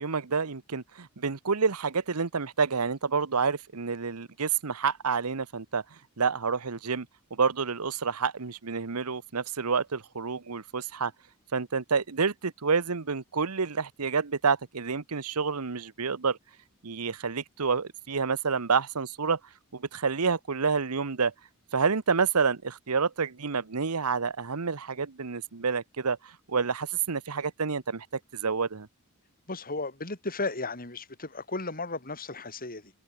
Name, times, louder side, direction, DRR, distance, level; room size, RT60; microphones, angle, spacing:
voice 1, 0.0-7.1 7.3-11.1 11.5-16.4 16.8-19.4 19.7-21.3 21.7-28.9, right 5 dB, 90° right, 1.0 m, -28 dB
voice 2, 29.5-32.9, left 3 dB, 40° left, 6.6 m, -35 dB
head